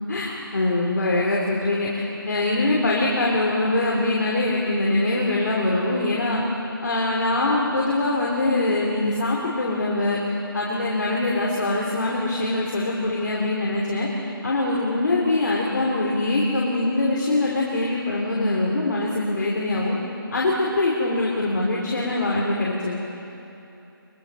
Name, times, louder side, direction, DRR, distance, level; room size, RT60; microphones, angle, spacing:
voice 1, 0.1-6.4 6.8-10.2 10.5-14.1 14.4-20.0 20.3-23.0, left 2 dB, 55° left, -3 dB, 3.2 m, -23 dB
23.5 x 23.0 x 5.5 m, 2.9 s
figure-of-eight pair, 170°, 12 cm